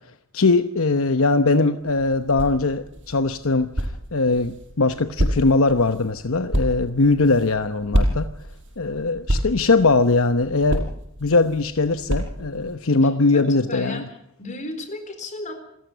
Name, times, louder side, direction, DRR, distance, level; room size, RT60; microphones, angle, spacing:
voice 1, 0.3-8.3 8.8-10.9 11.2-14.0, left 3 dB, 75° left, 10 dB, 1.0 m, -20 dB
sound 1, 1.8-12.7, equal, 60° right, 5.5 m, -29 dB
voice 2, 13.3-14.1 14.4-15.5, left 2 dB, 35° left, 7 dB, 4.1 m, -33 dB
27.5 x 14.0 x 6.8 m, 0.74 s
head